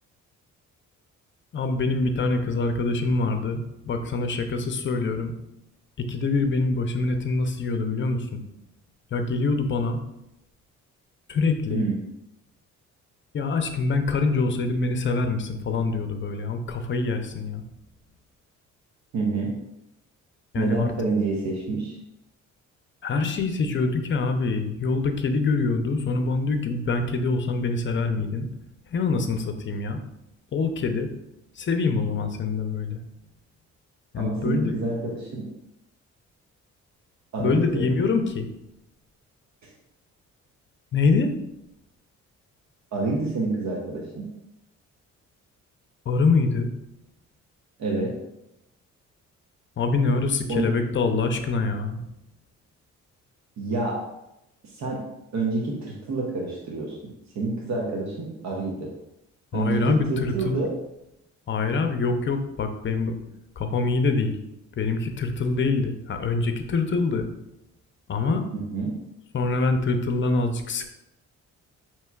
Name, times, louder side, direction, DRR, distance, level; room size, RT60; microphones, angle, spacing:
voice 1, 1.5-5.3 6.0-8.4 9.1-10.0 11.3-11.9 13.3-17.6 20.5-20.9 23.0-28.5 28.9-30.0 30.5-31.1 31.6-33.0 34.1-34.8 37.4-38.5 40.9-41.3 46.1-46.7 49.8-52.0 59.5-60.6 61.5-63.1 63.6-64.4 64.8-67.3 68.1-68.4 69.3-70.9, left 3 dB, 40° left, 6 dB, 0.6 m, -25 dB
voice 2, 19.1-19.5 20.6-22.0 34.2-35.5 37.3-37.9 42.9-44.3 47.8-48.1 50.5-50.6 53.6-54.0 54.7-55.0 55.3-57.0 57.3-58.9 59.5-60.7 68.5-68.9, right 3 dB, 65° right, -1 dB, 0.8 m, -27 dB
5.5 x 2.9 x 2.3 m, 0.86 s
cardioid pair, 90°, 30 cm